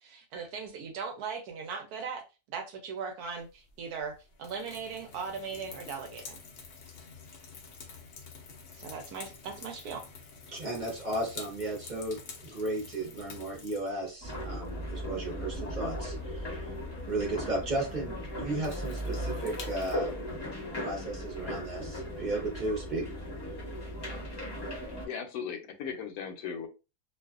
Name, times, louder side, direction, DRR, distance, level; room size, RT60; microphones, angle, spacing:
voice 1, 0.0-6.4 8.8-10.1, right 5 dB, 75° right, 1.0 m, -39 dB
sound 1, 3.4-19.9, left 5 dB, 85° left, 0.5 m, -49 dB
voice 2, 10.5-16.6 17.1-20.1 20.8-23.1, right 2 dB, 40° right, 0.7 m, -35 dB
sound 2, 14.2-25.1, equal, 25° left, 0.5 m, -37 dB
voice 3, 24.9-26.7, left 7 dB, 70° left, 1.0 m, -38 dB
2.6 x 2.3 x 2.3 m
omnidirectional pair, 1.8 m